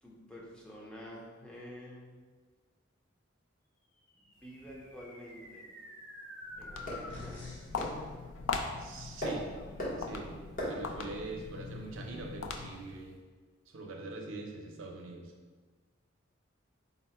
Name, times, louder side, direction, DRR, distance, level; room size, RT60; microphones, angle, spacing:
voice 1, 0.0-2.1 4.1-5.7 6.6-7.4 10.2-10.3, equal, 5° left, -4 dB, 0.6 m, -49 dB
sound 1, 4.2-7.8, left 1 dB, 65° left, 0.9 m, -48 dB
sound 2, 4.3-13.2, left 1 dB, 45° left, 1.0 m, -44 dB
Walk footsteps, 6.4-13.0, left 4 dB, 85° left, 0.4 m, -41 dB
voice 2, 8.7-9.5 10.0-13.2 13.7-15.3, right 2 dB, 85° right, 2 dB, 0.5 m, -43 dB
4.0 x 2.1 x 4.1 m, 1.4 s
head